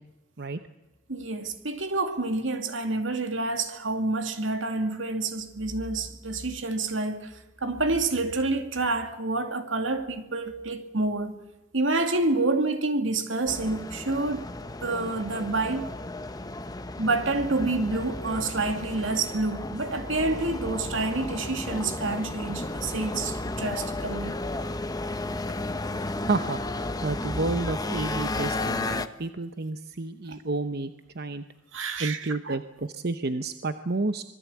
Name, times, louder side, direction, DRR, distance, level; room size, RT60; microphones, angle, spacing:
voice 1, 1.1-7.3 7.6-11.4 11.7-14.5 14.8-15.9 17.0-24.3 30.3-30.4 31.7-32.6, right 2 dB, 80° right, 2.4 m, -28 dB
sound 1, 13.5-29.1, left 2 dB, 20° left, 1.1 m, -33 dB
voice 2, 26.3-26.6 27.0-31.4 32.0-34.2, right 3 dB, 55° right, 0.9 m, -30 dB
25.5 x 20.0 x 8.5 m
head